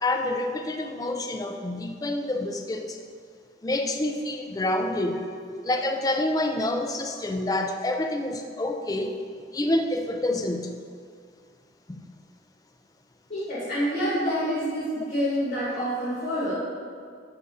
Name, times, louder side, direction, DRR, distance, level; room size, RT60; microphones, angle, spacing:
voice 1, 0.0-3.0 3.6-5.2 5.6-9.1 9.5-10.8 11.9-12.0, left 1 dB, 20° left, 4 dB, 0.3 m, -27 dB
voice 2, 13.3-16.6, equal, 40° left, -10 dB, 1.5 m, -27 dB
5.4 x 3.6 x 5.6 m, 2.1 s
head